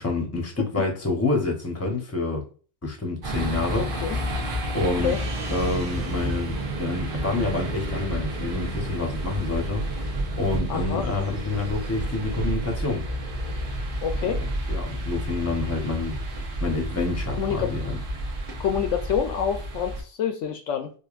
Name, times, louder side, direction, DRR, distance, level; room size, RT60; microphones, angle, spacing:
voice 1, 0.0-2.4 2.8-4.2 4.7-5.1 5.5-13.0 14.2-16.2 16.6-18.0, left 3 dB, 15° left, 0.8 m, -28 dB
sound 1, 3.2-20.0, right 1 dB, 45° right, 1.2 m, -30 dB
voice 2, 3.7-4.2 4.8-5.2 10.7-11.1 14.0-14.4 17.4-17.7 18.6-20.9, left 8 dB, 75° left, 0.9 m, -27 dB
Gong, 5.0-10.0, right 3 dB, 80° right, 1.5 m, -45 dB
4.9 x 2.6 x 2.4 m
omnidirectional pair, 1.3 m